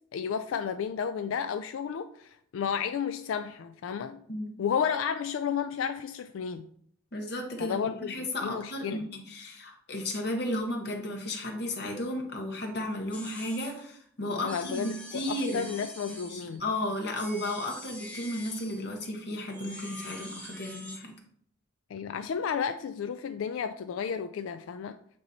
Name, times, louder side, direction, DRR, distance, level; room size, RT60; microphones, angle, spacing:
voice 1, 0.0-4.2 4.6-6.7 7.6-9.0 14.4-16.6 21.9-25.0, left 7 dB, 85° left, 10 dB, 0.3 m, -32 dB
voice 2, 7.1-15.7 16.1-21.1, left 1 dB, 55° left, 2 dB, 1.2 m, -34 dB
sound 1, 13.1-13.8 14.5-16.6 17.1-18.9 19.4-21.0, left 1 dB, 5° left, 0.8 m, -44 dB
8.8 x 3.0 x 4.1 m, 0.64 s
head